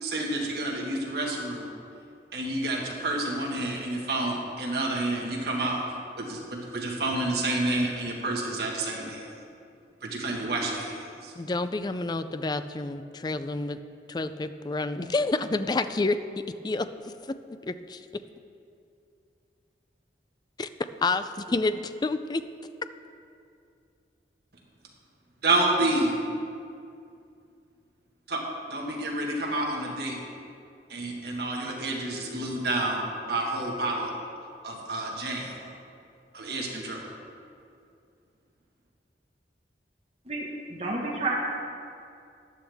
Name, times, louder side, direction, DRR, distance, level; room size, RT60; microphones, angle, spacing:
voice 1, 0.0-1.7 2.3-5.8 6.2-9.2 10.0-11.0 25.4-26.2 28.3-28.4 28.7-30.2 30.9-33.0 33.3-34.1 34.6-35.6 36.3-37.1, right 2 dB, 60° right, -1 dB, 1.6 m, -29 dB
voice 2, 11.4-13.8 14.1-16.2 16.6-16.9 17.3-17.4 17.7-18.1 20.6-20.7 21.0-22.4, left 3 dB, 25° left, 11 dB, 0.4 m, -28 dB
voice 3, 40.2-41.3, right 3 dB, 35° right, -4 dB, 1.4 m, -30 dB
14.0 x 10.5 x 3.5 m, 2.5 s
head